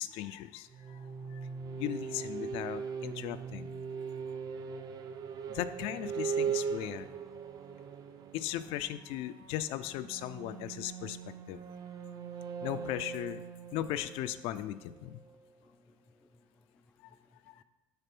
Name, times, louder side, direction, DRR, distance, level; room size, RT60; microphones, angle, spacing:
voice 1, 0.0-1.5 1.8-3.7 5.5-7.1 8.3-11.2 11.5-11.6 12.6-13.4 13.7-15.2 17.0-17.1 17.5-17.6, left 13 dB, 85° left, 0.4 m, -37 dB
sound 1, 0.7-15.3, right 6 dB, 45° right, 0.5 m, -40 dB
voice 2, 15.2-17.6, left 2 dB, 10° left, 0.3 m, -67 dB
6.7 x 4.1 x 6.0 m
cardioid pair, 135°, 9 cm